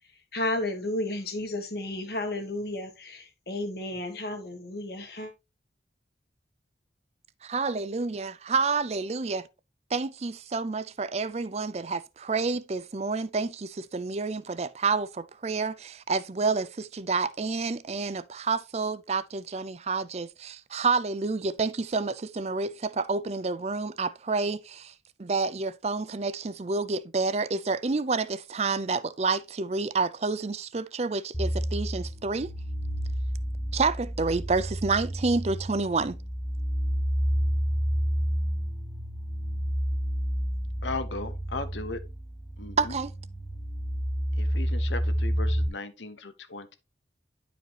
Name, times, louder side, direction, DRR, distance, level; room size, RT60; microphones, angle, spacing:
voice 1, 0.3-5.3, left 1 dB, 60° left, 1.8 m, -32 dB
voice 2, 7.4-9.4 9.9-24.9 25.2-32.5 33.7-36.2 42.8-43.1, right 4 dB, 35° right, 0.5 m, -29 dB
sound 1, 31.3-45.7, equal, 5° left, 1.1 m, -30 dB
voice 3, 40.8-42.0 42.6-42.9 44.3-46.8, left 3 dB, 90° left, 1.0 m, -37 dB
10.5 x 5.0 x 2.9 m
head